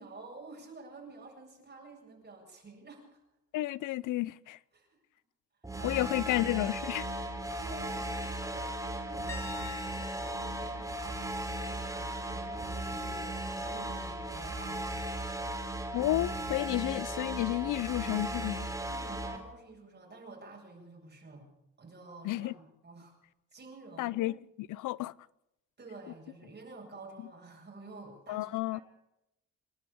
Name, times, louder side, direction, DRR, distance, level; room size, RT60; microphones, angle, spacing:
voice 1, 0.0-3.2 4.7-5.0 5.8-6.1 7.6-15.1 18.9-21.5 21.8-23.2 23.5-24.2 25.8-28.8, right 3 dB, 35° right, 7.8 m, -50 dB
voice 2, 3.5-4.6 5.8-7.1 15.9-18.7 22.2-22.5 24.0-25.1 28.3-28.8, left 17 dB, 85° left, 0.7 m, -31 dB
sound 1, 5.6-19.4, right 1 dB, 10° right, 3.9 m, -37 dB
sound 2, 9.3-13.0 13.4-13.7 16.6-16.7, left 4 dB, 10° left, 5.8 m, -49 dB
28.0 x 11.5 x 8.7 m
cardioid pair, 90°, 30 cm